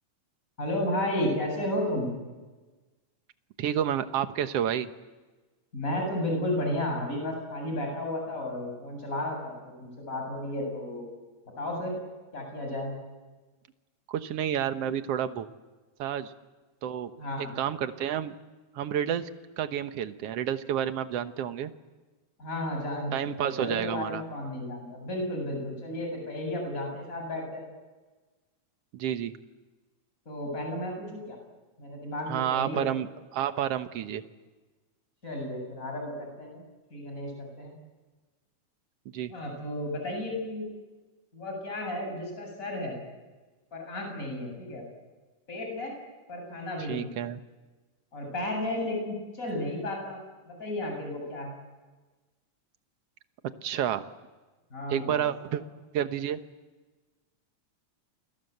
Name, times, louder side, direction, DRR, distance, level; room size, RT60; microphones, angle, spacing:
voice 1, 0.6-2.1 5.7-11.1 11.6-12.0 12.3-12.9 17.2-17.6 22.4-27.6 30.3-31.4 31.8-32.8 35.2-36.6 36.9-37.8 39.3-40.7 41.3-43.0 43.7-44.8 45.5-45.9 46.3-47.1 48.1-50.2 50.5-51.6 54.7-55.3, left 1 dB, 25° left, 2 dB, 7.8 m, -33 dB
voice 2, 3.6-4.9 14.1-15.5 16.0-16.3 16.8-17.1 17.6-18.3 18.8-19.3 19.6-21.7 23.1-24.2 28.9-29.3 32.3-34.2 39.1-39.3 46.9-47.4 53.6-54.0 54.9-55.6 55.9-56.4, right 10 dB, 60° right, 9 dB, 1.9 m, -30 dB
29.0 x 23.5 x 8.0 m, 1.2 s
omnidirectional pair, 3.6 m